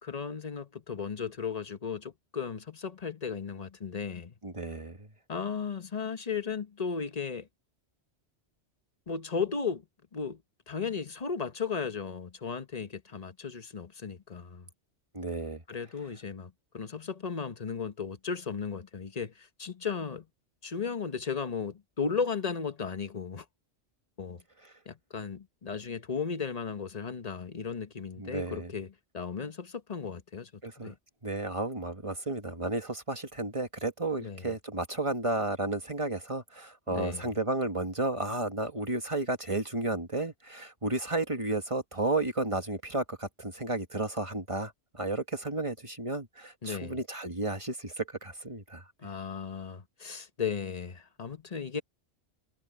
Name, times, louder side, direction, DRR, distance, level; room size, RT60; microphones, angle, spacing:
voice 1, 0.0-4.3 5.3-7.5 9.1-9.8 10.1-10.4 10.7-14.7 15.7-20.2 20.6-23.4 24.2-24.4 24.9-30.5 30.8-30.9 34.2-34.5 36.9-37.3 46.6-47.0 49.0-51.8, left 5 dB, 35° left, 1.0 m, -35 dB
voice 2, 4.4-5.1 15.1-15.6 28.2-28.7 30.6-30.9 31.2-48.8, right 2 dB, 30° right, 1.8 m, -33 dB
omnidirectional pair, 1.2 m